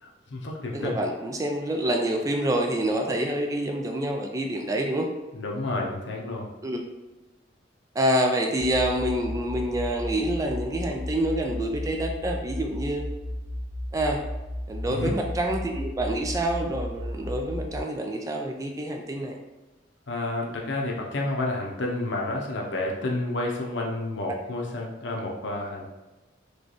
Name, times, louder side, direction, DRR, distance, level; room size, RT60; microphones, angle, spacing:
voice 1, 0.0-1.0 5.3-6.5 14.9-15.2 20.1-25.9, left 2 dB, 70° left, -1 dB, 0.7 m, -30 dB
voice 2, 0.7-5.1 6.6-6.8 8.0-13.0 13.9-14.3 14.7-19.4, right 1 dB, 20° right, 2 dB, 0.3 m, -27 dB
sound 1, 8.6-17.8, left 1 dB, 85° right, 0.9 m, -34 dB
3.2 x 2.3 x 3.9 m, 1.1 s
head